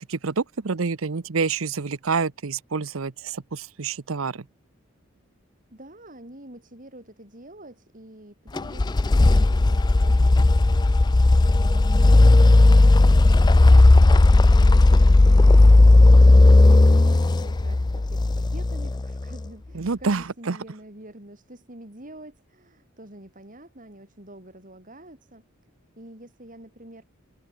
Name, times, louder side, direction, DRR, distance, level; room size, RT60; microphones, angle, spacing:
voice 1, 0.0-4.5 19.7-20.6, right 4 dB, 90° right, 0.8 m, -27 dB
voice 2, 5.7-27.0, right 1 dB, 40° right, 6.7 m, -47 dB
sound 1, 8.6-19.4, left 2 dB, 20° left, 0.4 m, -15 dB
head